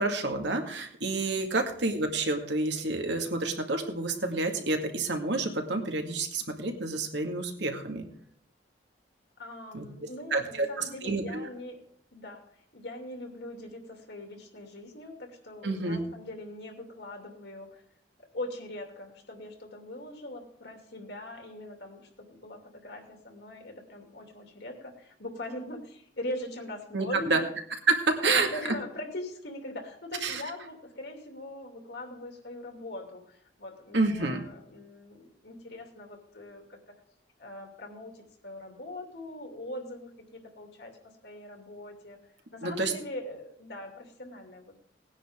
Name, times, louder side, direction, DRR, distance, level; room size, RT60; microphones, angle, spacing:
voice 1, 0.0-8.1 9.7-9.8 10.3-10.7 11.0-11.5 15.6-16.0 26.9-27.4 27.9-28.5 30.2-30.4 33.9-34.4 42.6-42.9, right 3 dB, 70° right, 3 dB, 2.0 m, -29 dB
voice 2, 9.4-11.8 12.1-12.4 12.7-17.8 18.2-27.5 28.2-36.9 37.4-41.0 41.2-42.2 42.5-44.8, left 1 dB, 65° left, 2 dB, 2.8 m, -41 dB
18.5 x 10.0 x 3.7 m, 0.65 s
head